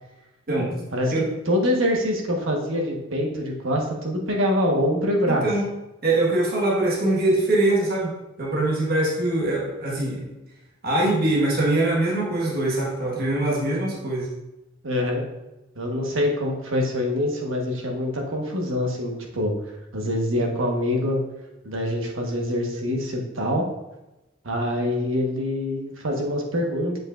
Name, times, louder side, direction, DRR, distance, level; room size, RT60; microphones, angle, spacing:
voice 1, 0.5-0.8 1.1-1.3 5.4-5.7 6.0-10.3 10.8-14.3, right 2 dB, 50° right, -3 dB, 1.4 m, -23 dB
voice 2, 1.5-5.5 14.8-15.2 15.7-19.5 19.9-21.2 21.6-23.6 24.4-27.0, left 1 dB, 70° right, 1 dB, 1.2 m, -25 dB
7.6 x 5.2 x 2.5 m, 0.98 s
head